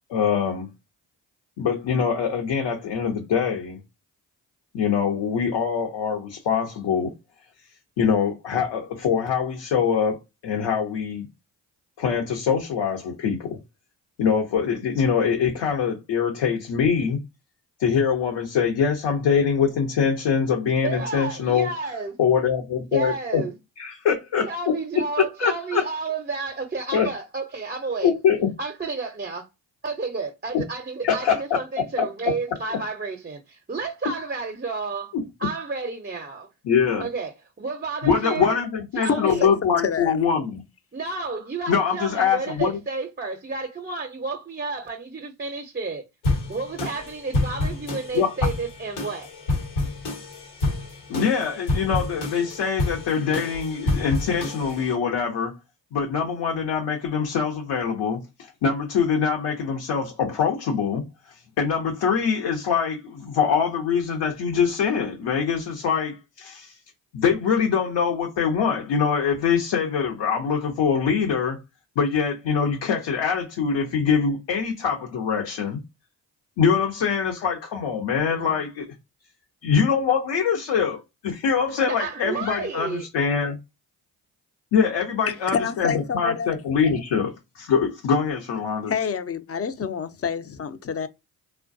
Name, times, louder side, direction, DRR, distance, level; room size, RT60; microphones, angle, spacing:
voice 1, 0.1-0.7 1.6-3.8 4.7-7.1 8.0-10.2 10.4-11.3 12.0-13.6 14.2-17.2 17.8-21.7 22.2-23.4 23.8-24.8 25.4-25.8 26.9-27.1 28.0-28.5 31.0-31.4 36.7-37.1 38.0-40.6 41.7-42.7 48.1-48.3 51.1-55.5 55.9-58.2 58.6-61.0 61.6-66.7 67.1-71.6 72.0-75.8 76.6-78.8 79.6-83.6 84.7-88.9, left 6 dB, 65° left, 0.8 m, -23 dB
voice 2, 20.8-22.2 22.9-23.6 24.4-28.1 28.6-29.5 29.8-36.5 37.0-38.6 38.9-39.5 40.9-46.1 46.5-49.3 78.3-78.6 81.8-83.1, right 4 dB, 20° right, 0.6 m, -31 dB
voice 3, 39.0-39.5 39.8-40.1 85.3-86.5 88.9-91.1, left 6 dB, 30° left, 0.5 m, -27 dB
sound 1, 46.2-54.9, left 2 dB, 80° left, 1.1 m, -28 dB
2.2 x 2.2 x 2.6 m
hypercardioid pair, 40°, 46 cm